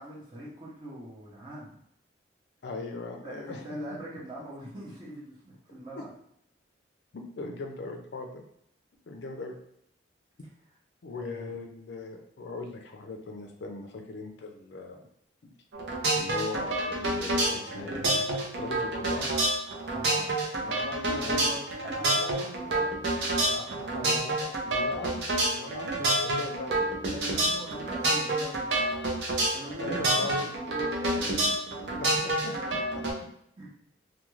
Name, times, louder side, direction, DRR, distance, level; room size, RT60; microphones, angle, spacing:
voice 1, 0.0-1.8 3.2-6.1 11.1-11.6 19.9-23.0 23.4-23.8 26.4-28.8 29.5-31.5 33.6-33.7, right 1 dB, 25° right, -8 dB, 0.7 m, -42 dB
voice 2, 2.6-4.0 5.9-6.0 7.1-8.4 9.1-9.6 11.0-15.0 15.4-15.5 16.1-18.2 18.5-19.3 20.6-20.8 21.1-21.4 23.9-26.8 27.3-27.5 29.4-30.3 32.0-33.3, left 3 dB, 65° left, 2 dB, 0.4 m, -39 dB
sound 1, 15.7-33.1, right 1 dB, 65° right, 0.6 m, -28 dB
2.4 x 2.2 x 3.0 m, 0.72 s
head